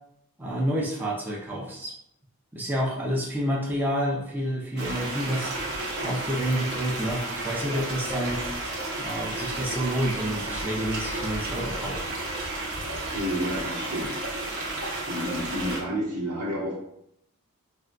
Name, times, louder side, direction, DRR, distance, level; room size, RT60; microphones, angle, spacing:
voice 1, 0.4-1.9 2.5-5.5 6.0-8.4 9.0-12.1, equal, 10° right, -5 dB, 0.4 m, -29 dB
sound 1, 4.8-15.8, right 2 dB, 50° right, 0.8 m, -32 dB
voice 2, 13.1-14.2 15.1-16.8, equal, 85° right, -4 dB, 1.0 m, -30 dB
3.6 x 2.2 x 2.4 m, 0.77 s
head